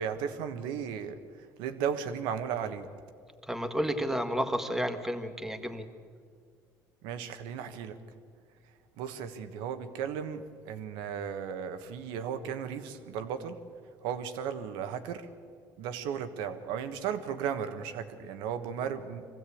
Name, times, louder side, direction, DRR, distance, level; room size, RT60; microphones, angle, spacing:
voice 1, 0.0-2.9 7.0-8.0 9.0-13.6 14.0-15.3 15.8-19.3, right 7 dB, 85° right, 9 dB, 1.4 m, -35 dB
voice 2, 3.5-5.9, equal, 5° right, 7 dB, 1.7 m, -31 dB
23.0 x 15.5 x 8.6 m, 2.1 s
cardioid pair, 100°, 8 cm